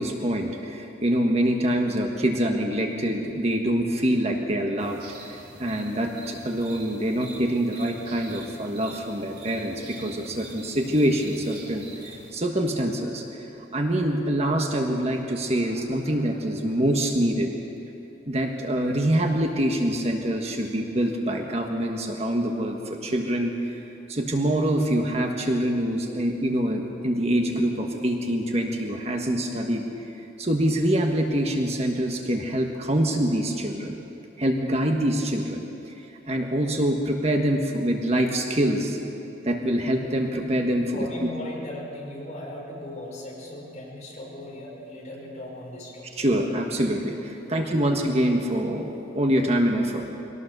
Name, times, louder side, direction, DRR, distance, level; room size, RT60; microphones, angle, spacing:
voice 1, 0.0-5.0 5.3-13.2 13.7-17.5 18.3-23.8 24.1-29.8 30.4-34.0 34.4-35.6 36.2-39.0 39.4-41.3 46.1-50.1, right 1 dB, 35° right, 2 dB, 1.5 m, -25 dB
sound 1, 4.8-12.3, right 2 dB, 60° right, 3.4 m, -45 dB
voice 2, 15.4-16.4 40.9-46.2 47.5-48.0, left 1 dB, 40° left, -3 dB, 5.5 m, -38 dB
23.0 x 18.0 x 6.8 m, 2.9 s
head